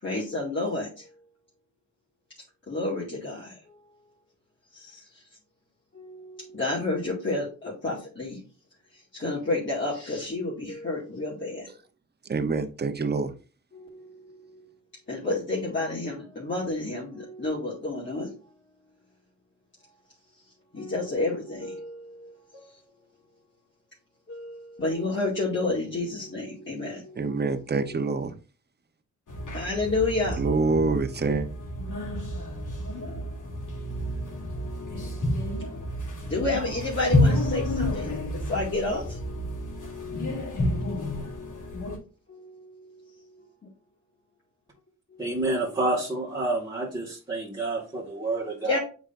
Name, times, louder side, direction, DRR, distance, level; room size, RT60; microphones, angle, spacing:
voice 1, 0.0-1.1 2.7-4.1 4.7-5.2 5.9-8.4 8.9-11.7 13.7-14.7 15.1-18.3 20.7-23.0 24.3-28.2 29.5-30.4 34.1-34.2 35.0-35.5 36.2-39.2 40.1-40.3 41.1-41.5 42.3-43.4 45.1-45.3 48.6-48.8, left 2 dB, 40° left, 2.4 m, -31 dB
voice 2, 12.3-13.3 27.2-28.3 30.4-31.5, right 4 dB, 35° right, 0.9 m, -26 dB
sound 1, 29.3-42.0, left 1 dB, 80° left, 3.1 m, -30 dB
voice 3, 45.2-48.8, right 2 dB, 15° right, 2.0 m, -28 dB
8.0 x 5.1 x 2.6 m
wide cardioid pair, 115°, 31 cm